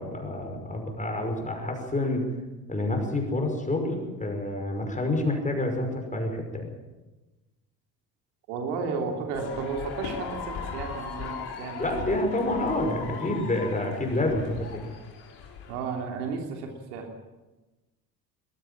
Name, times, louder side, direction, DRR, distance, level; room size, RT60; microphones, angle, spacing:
voice 1, 0.0-2.2 2.7-6.7 11.8-14.9, left 2 dB, 15° left, 3 dB, 5.7 m, -28 dB
voice 2, 8.5-12.2 15.7-17.1, right 4 dB, 65° right, 3 dB, 3.2 m, -33 dB
sound 1, 9.3-15.7, left 6 dB, 50° left, 6.0 m, -38 dB
21.5 x 14.5 x 8.8 m, 1.1 s
figure-of-eight pair, 60°, 49 cm